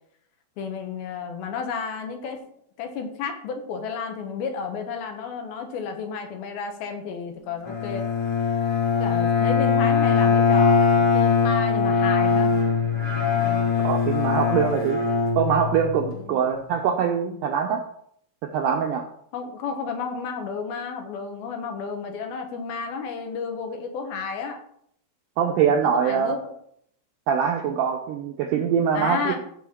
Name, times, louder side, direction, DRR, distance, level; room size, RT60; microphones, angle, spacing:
voice 1, 0.6-2.4 2.8-8.1 9.0-12.5 16.1-16.4 19.3-24.6 25.8-26.4 28.9-29.4, left 5 dB, 70° left, 5 dB, 3.1 m, -32 dB
Bowed string instrument, 7.7-16.1, left 5 dB, 35° left, 1.9 m, -21 dB
voice 2, 13.8-15.0 15.4-17.8 18.5-19.0 25.4-26.4 27.3-29.4, right 7 dB, 90° right, 3 dB, 1.9 m, -23 dB
15.5 x 5.6 x 4.4 m, 0.69 s
omnidirectional pair, 4.7 m